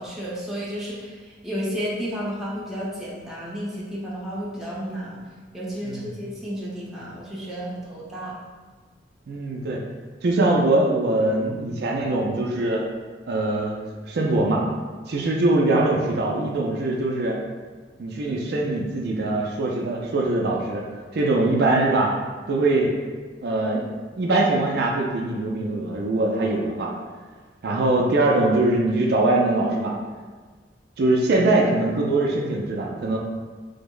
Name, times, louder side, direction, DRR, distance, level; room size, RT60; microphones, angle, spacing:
voice 1, 0.0-5.2 5.5-8.4, equal, ahead, -8 dB, 0.7 m, -32 dB
voice 2, 9.3-9.8 10.2-12.8 13.3-14.6 15.1-17.4 18.0-20.8 21.1-22.1 22.5-22.9 23.4-23.9 24.2-26.9 27.6-29.9 31.0-33.2, right 2 dB, 60° right, -1 dB, 0.4 m, -22 dB
3.4 x 2.0 x 3.7 m, 1.4 s
head